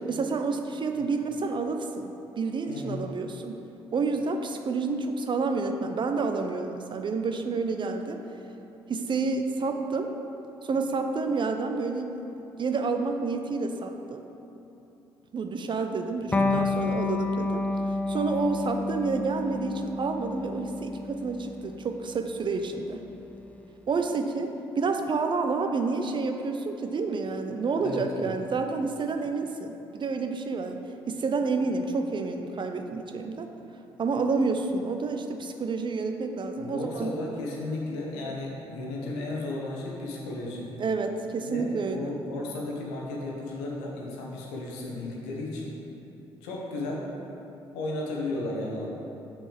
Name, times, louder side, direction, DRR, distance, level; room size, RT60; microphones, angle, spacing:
voice 1, 0.1-3.6 3.9-8.2 8.9-10.1 10.6-12.1 12.6-14.2 15.3-23.0 23.9-33.5 34.0-37.1 40.8-42.1, right 4 dB, 35° right, 6 dB, 0.6 m, -29 dB
voice 2, 2.7-3.0 16.3-16.6 27.8-28.3 36.6-40.7 41.5-45.8 46.4-47.1 47.7-48.9, left 2 dB, 70° left, -2 dB, 1.1 m, -34 dB
Electric guitar, 16.3-23.5, left 3 dB, 10° left, 0.6 m, -30 dB
8.0 x 6.1 x 3.5 m, 3.0 s
figure-of-eight pair, 45°, 13 cm